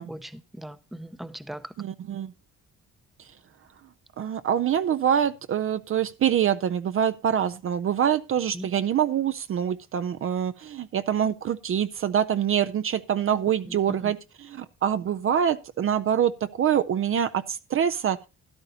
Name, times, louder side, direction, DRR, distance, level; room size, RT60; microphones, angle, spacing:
voice 1, 0.0-1.7 8.5-8.7 13.7-14.1, right 1 dB, ahead, 0.6 m, -39 dB
voice 2, 1.8-2.3 4.2-18.2, right 9 dB, 45° right, 0.4 m, -25 dB
13.0 x 11.0 x 2.7 m
cardioid pair, 90°, 30 cm